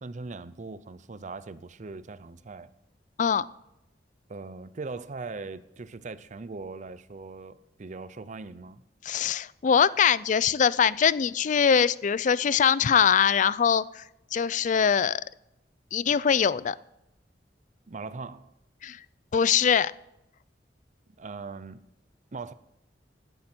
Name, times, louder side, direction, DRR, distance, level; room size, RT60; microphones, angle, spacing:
voice 1, 0.0-2.7 4.3-8.8 17.9-18.5 21.2-21.8 22.3-22.5, right 3 dB, 45° right, 0.5 m, -40 dB
voice 2, 9.0-14.0 14.3-15.2 15.9-16.8 18.8-19.0 19.3-19.9, left 7 dB, 45° left, 0.4 m, -22 dB
16.0 x 12.0 x 4.4 m
head